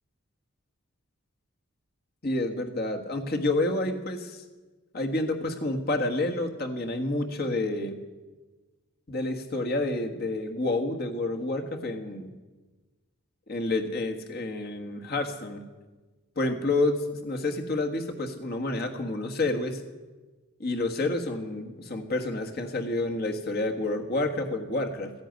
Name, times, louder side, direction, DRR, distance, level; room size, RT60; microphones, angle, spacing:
voice 1, 2.2-4.4 4.9-8.0 9.1-12.3 13.5-15.6 16.3-19.8 20.6-25.1, left 2 dB, 50° left, 3 dB, 1.6 m, -29 dB
14.5 x 10.5 x 9.3 m, 1.2 s
head